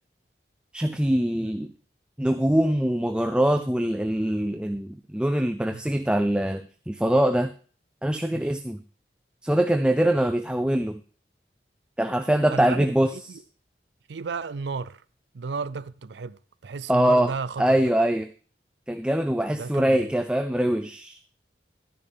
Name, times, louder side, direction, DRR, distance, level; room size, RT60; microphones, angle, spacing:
voice 1, 0.7-1.7 2.2-7.5 8.0-8.8 9.4-11.0 12.0-13.4 16.9-18.3 18.9-21.2, right 1 dB, 5° right, 0.4 m, -23 dB
voice 2, 12.5-12.9 14.1-15.0 15.3-16.3 16.6-17.6 19.6-20.0, right 4 dB, 70° right, 0.5 m, -32 dB
12.5 x 10.0 x 3.5 m
head